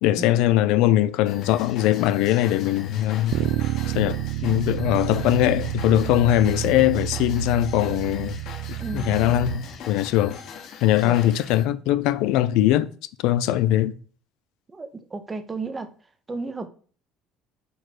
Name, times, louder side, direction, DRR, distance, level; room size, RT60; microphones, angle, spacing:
voice 1, 0.0-3.5 3.9-8.4 8.9-10.4 10.8-12.9 13.2-13.9, left 13 dB, 70° left, 0.4 m, -21 dB
sound 1, 1.3-11.7, left 5 dB, 55° left, 1.0 m, -40 dB
Bass guitar, 3.3-9.6, right 14 dB, 80° right, 0.3 m, -29 dB
voice 2, 8.8-9.1 11.0-11.2 14.7-15.9 16.3-16.7, right 3 dB, 15° right, 0.6 m, -33 dB
4.7 x 4.6 x 6.1 m
cardioid pair, 160°, 0 cm